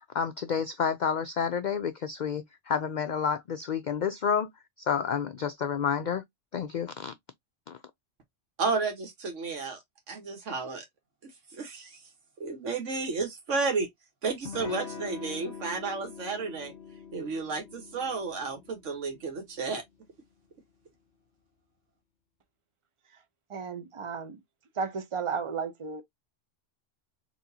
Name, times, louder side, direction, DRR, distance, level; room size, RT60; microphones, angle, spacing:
voice 1, 0.1-4.5 4.8-6.2 6.5-7.1 7.7-7.8, left 7 dB, 80° left, 0.4 m, -29 dB
voice 2, 8.6-9.8 10.1-10.8 11.5-12.0 12.4-13.9 14.2-16.7 17.1-19.8, right 4 dB, 70° right, 1.5 m, -32 dB
Electric guitar / Strum, 14.4-19.8, left 6 dB, 60° left, 1.4 m, -44 dB
voice 3, 23.5-24.4 24.8-26.0, right 5 dB, 30° right, 0.6 m, -33 dB
4.2 x 3.0 x 2.7 m
omnidirectional pair, 1.3 m